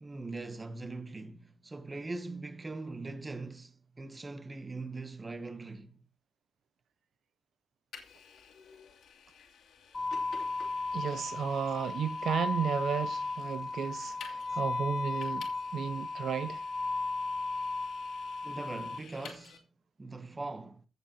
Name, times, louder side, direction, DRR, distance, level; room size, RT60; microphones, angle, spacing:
voice 1, 0.0-6.0 18.4-19.7 20.0-20.9, right 3 dB, 15° right, 0.8 m, -41 dB
Vehicle, 7.9-19.6, left 6 dB, 65° left, 2.6 m, -53 dB
sound 1, 9.9-19.0, left 3 dB, 20° left, 0.5 m, -35 dB
voice 2, 10.9-16.6, right 7 dB, 55° right, 0.5 m, -34 dB
15.5 x 7.4 x 2.8 m
cardioid pair, 155°, 0 cm